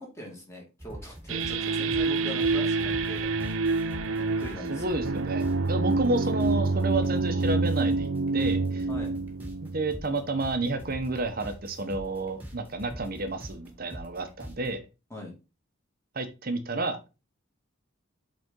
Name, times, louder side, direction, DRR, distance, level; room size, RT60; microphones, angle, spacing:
voice 1, 0.0-3.3 4.2-4.8 6.1-6.2 8.9-9.2 15.1-15.3, left 1 dB, 15° left, -1 dB, 2.3 m, -41 dB
sound 1, 0.8-14.7, equal, 10° right, 1.8 m, -44 dB
sound 2, 1.3-10.6, right 3 dB, 70° right, 0.7 m, -27 dB
voice 2, 4.7-8.9 9.7-14.8 16.1-17.0, right 2 dB, 45° right, 7 dB, 1.0 m, -31 dB
8.1 x 4.2 x 3.8 m, 0.29 s
head